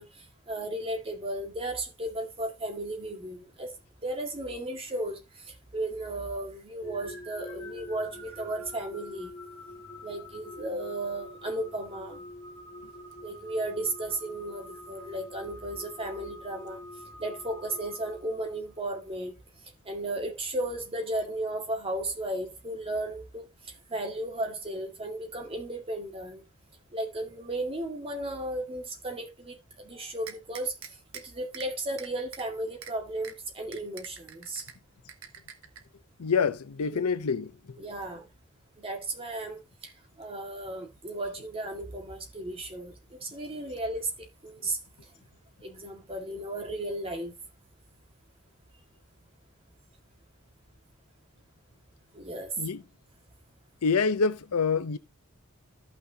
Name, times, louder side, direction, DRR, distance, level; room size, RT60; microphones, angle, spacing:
voice 1, 0.0-3.7 4.0-9.3 10.0-12.2 13.2-16.8 17.2-19.4 19.8-26.4 26.9-30.7 31.1-34.7 36.8-37.0 37.8-38.3 38.8-44.8 45.6-47.3 52.1-52.6, right 1 dB, 25° right, 1.9 m, -35 dB
sound 1, 6.8-18.8, left 1 dB, 5° left, 4.5 m, -46 dB
sound 2, 30.3-31.2 31.5-31.7 32.0-32.4 32.8-32.9 33.2-33.3 33.7-34.7 35.1-35.8, right 7 dB, 65° right, 1.1 m, -43 dB
voice 2, 36.2-37.5 52.6-52.8 53.8-55.0, left 5 dB, 85° left, 0.6 m, -26 dB
14.0 x 5.9 x 2.8 m
head